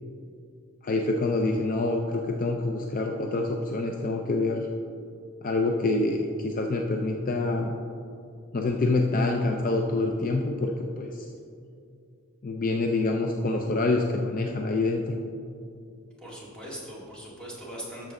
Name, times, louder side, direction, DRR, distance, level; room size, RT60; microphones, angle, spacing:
voice 1, 0.8-4.7 5.4-7.8 8.5-11.3 12.4-15.2, left 2 dB, 40° left, 2 dB, 0.5 m, -26 dB
voice 2, 16.2-18.1, equal, 5° left, -6 dB, 2.0 m, -40 dB
12.5 x 6.7 x 3.7 m, 2.4 s
head